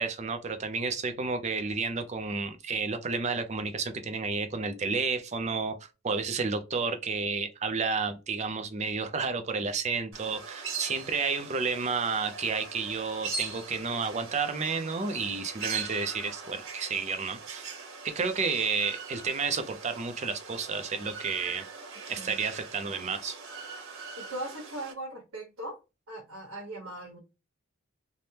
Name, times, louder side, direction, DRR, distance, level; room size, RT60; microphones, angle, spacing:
voice 1, 0.0-17.7 18.0-21.6 22.1-23.4, right 4 dB, 30° right, 0.4 m, -31 dB
sound 1, 10.1-24.9, right 5 dB, 60° right, 1.0 m, -41 dB
voice 2, 24.2-25.8 26.1-27.2, right 1 dB, 85° right, 1.1 m, -39 dB
3.3 x 2.1 x 2.7 m
head